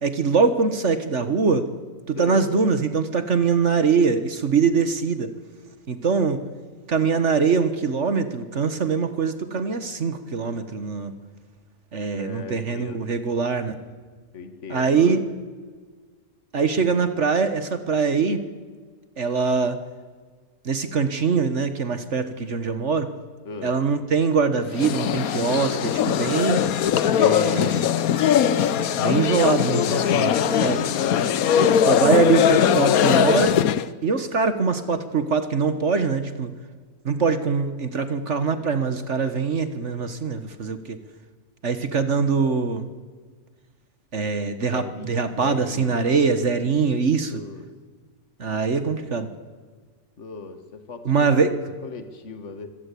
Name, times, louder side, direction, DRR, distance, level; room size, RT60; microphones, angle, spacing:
voice 1, 0.0-1.7 2.1-5.3 5.9-6.4 6.9-11.1 11.9-13.8 14.7-15.2 16.5-18.4 19.2-19.8 20.6-23.1 23.6-26.6 27.2-27.9 29.0-30.3 30.6-30.8 31.8-33.6 34.0-36.5 37.0-41.0 41.6-42.9 44.1-47.4 48.4-49.3 51.0-51.5, right 5 dB, 55° right, 11 dB, 1.6 m, -23 dB
voice 2, 2.1-2.5 12.1-13.1 14.3-15.2 23.5-23.8 30.0-31.2 44.7-45.2 45.4-46.2 47.3-47.7 50.2-51.1 51.5-52.7, left 4 dB, 50° left, 8 dB, 2.0 m, -37 dB
sound 1, 24.7-33.9, left 9 dB, 75° left, 1.3 m, -20 dB
25.0 x 17.5 x 8.5 m, 1.5 s
omnidirectional pair, 1.6 m